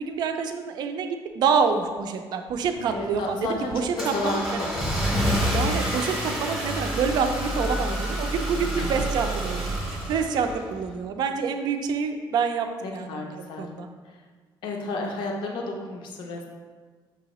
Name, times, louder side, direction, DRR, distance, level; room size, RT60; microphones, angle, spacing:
voice 1, 0.0-4.6 5.5-9.7 10.1-13.9, right 5 dB, 55° right, 6 dB, 0.4 m, -27 dB
Car / Engine starting, 2.7-10.9, equal, 5° right, 0.8 m, -28 dB
voice 2, 2.9-5.0 8.8-8.9 13.1-13.7 14.6-16.5, left 2 dB, 65° left, 1 dB, 0.5 m, -31 dB
6.0 x 2.8 x 2.9 m, 1.5 s
cardioid pair, 160°, 9 cm